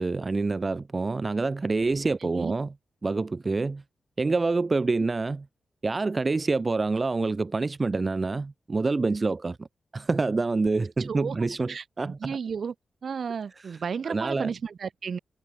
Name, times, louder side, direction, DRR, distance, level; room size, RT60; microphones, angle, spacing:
voice 1, 0.0-2.7 3.0-3.8 4.2-5.5 5.8-9.7 9.9-12.4 13.6-13.8 14.0-14.5, right 3 dB, 25° right, 2.9 m, -27 dB
voice 2, 11.1-12.7 13.0-15.2, right 6 dB, 50° right, 6.5 m, -33 dB
wide cardioid pair, 155°, 0 cm